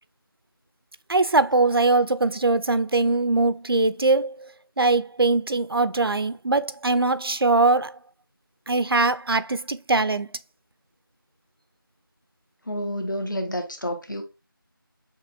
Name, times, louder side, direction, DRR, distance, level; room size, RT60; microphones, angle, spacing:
voice 1, 1.1-4.5 4.8-7.9 8.7-10.3, right 3 dB, 90° right, 0.5 m, -21 dB
voice 2, 12.7-14.2, equal, 60° left, 1.2 m, -29 dB
6.6 x 2.9 x 2.3 m
figure-of-eight pair, 175°, 12 cm